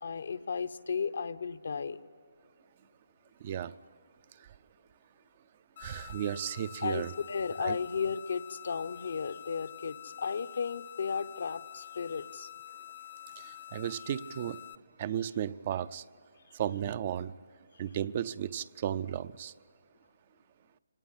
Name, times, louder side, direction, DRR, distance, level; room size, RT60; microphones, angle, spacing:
voice 1, 0.0-2.0 6.8-12.5, left 5 dB, 65° left, 11 dB, 0.8 m, -34 dB
voice 2, 3.4-3.7 4.4-4.5 5.8-7.1 7.6-7.8 13.4-14.6 15.0-16.0 16.5-17.3 17.8-19.5, right 10 dB, 40° right, 15 dB, 0.5 m, -34 dB
sound 1, 5.8-14.8, left 12 dB, 40° left, 0.8 m, -48 dB
25.0 x 18.0 x 9.9 m, 2.3 s
figure-of-eight pair, 150°, 0 cm